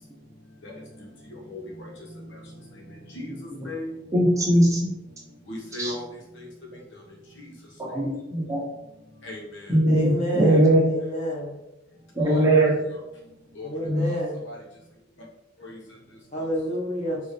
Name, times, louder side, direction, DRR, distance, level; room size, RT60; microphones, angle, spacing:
voice 1, 1.3-1.9 2.2-2.4 3.1-3.3 3.6-3.9 5.5-6.0 6.4-6.5 7.4-7.5 9.2-9.7 12.2-12.4 12.9-13.0 13.5-13.7 14.0-14.6 15.6-15.8, left 1 dB, 65° left, -2 dB, 1.2 m, -37 dB
voice 2, 4.1-4.8 5.8-5.9 7.8-8.6 9.7-10.8 12.1-12.8 13.8-14.1, right 1 dB, 15° right, -4 dB, 0.9 m, -20 dB
voice 3, 9.9-11.6 13.6-14.4 16.3-17.2, equal, 35° left, -3 dB, 1.3 m, -29 dB
4.2 x 3.4 x 3.2 m, 0.89 s
head